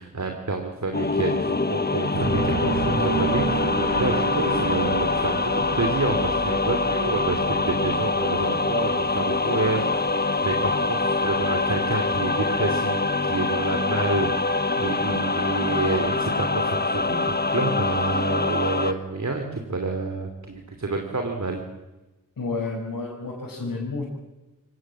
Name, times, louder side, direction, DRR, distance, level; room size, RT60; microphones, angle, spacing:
voice 1, 0.0-21.6, right 3 dB, 55° right, 4 dB, 3.0 m, -29 dB
sound 1, 0.9-18.9, left 3 dB, 30° left, 1.4 m, -24 dB
sound 2, 2.1-12.2 12.5-12.6 13.0-13.4 13.7-13.8 14.0-14.1 14.7-15.0 15.5-15.6, right 4 dB, 85° right, 2.3 m, -31 dB
voice 2, 22.4-24.0, left 3 dB, 85° left, -6 dB, 6.4 m, -30 dB
25.0 x 19.0 x 7.5 m, 1.1 s
cardioid pair, 40°, 33 cm